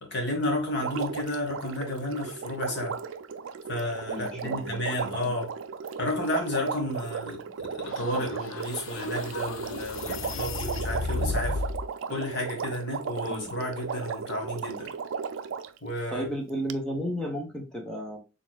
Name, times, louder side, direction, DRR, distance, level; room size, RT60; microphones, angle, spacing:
voice 1, 0.0-3.0 3.7-5.5 6.0-11.6 12.1-14.9 15.8-16.3, left 1 dB, 60° left, 1.5 m, -32 dB
Water, 0.8-15.8 16.7-16.8, right 6 dB, 75° right, 0.4 m, -35 dB
voice 2, 4.1-4.8 5.2-5.4 13.3-13.5 16.1-18.2, equal, 5° left, 0.7 m, -33 dB
sound 1, 7.8-11.9, left 3 dB, 90° left, 0.5 m, -34 dB
4.4 x 3.5 x 2.3 m
head